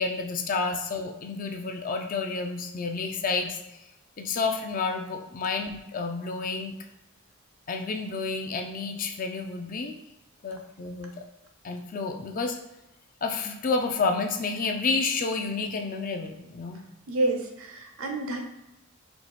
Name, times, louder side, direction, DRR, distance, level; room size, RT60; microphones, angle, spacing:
voice 1, 0.0-3.6 4.2-6.7 7.7-9.9 10.4-11.2 11.6-12.6 13.2-16.8, left 4 dB, 40° left, 5 dB, 0.4 m, -30 dB
voice 2, 17.1-18.4, right 2 dB, 75° right, 3 dB, 0.7 m, -28 dB
4.5 x 2.3 x 4.1 m, 0.94 s
head